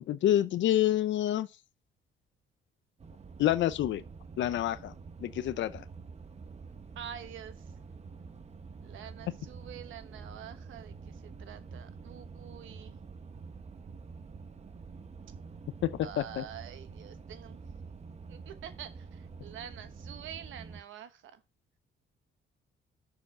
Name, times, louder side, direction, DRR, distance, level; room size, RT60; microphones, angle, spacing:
voice 1, 0.0-1.5 3.4-4.0 4.4-4.9 5.2-5.8 15.8-15.9 16.2-16.4, left 12 dB, 70° left, 0.6 m, -27 dB
sound 1, 3.0-20.8, right 4 dB, 35° right, 1.0 m, -47 dB
voice 2, 7.0-7.6 8.8-13.0 16.0-17.6 18.3-21.4, right 9 dB, 80° right, 1.2 m, -47 dB
6.6 x 4.9 x 6.0 m
cardioid pair, 90°, 20 cm